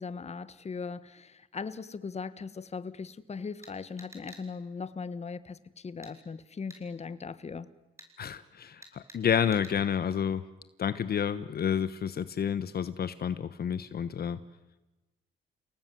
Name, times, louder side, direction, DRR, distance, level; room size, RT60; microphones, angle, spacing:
voice 1, 0.0-7.7, left 5 dB, 35° left, 15 dB, 1.4 m, -39 dB
sound 1, 3.6-4.4 6.0-6.1 6.7-6.8 8.0-8.1 8.8-9.2 9.5-9.8, right 1 dB, 15° right, 6.7 m, -50 dB
voice 2, 8.2-10.4 10.8-14.4, left 8 dB, 50° left, 13 dB, 1.1 m, -30 dB
30.0 x 18.5 x 9.4 m, 1.1 s
cardioid pair, 90°, 20 cm